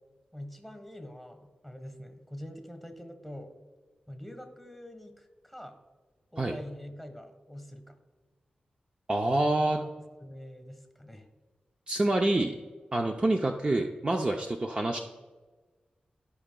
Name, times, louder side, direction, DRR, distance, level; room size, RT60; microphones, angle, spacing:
voice 1, 0.3-3.5 4.1-5.8 6.3-8.0 9.5-11.3, left 1 dB, ahead, 7 dB, 1.2 m, -45 dB
voice 2, 9.1-9.8 11.9-12.5 12.9-15.0, right 2 dB, 35° right, 3 dB, 0.5 m, -27 dB
14.0 x 4.9 x 2.3 m, 1.3 s
cardioid pair, 65°, 3 cm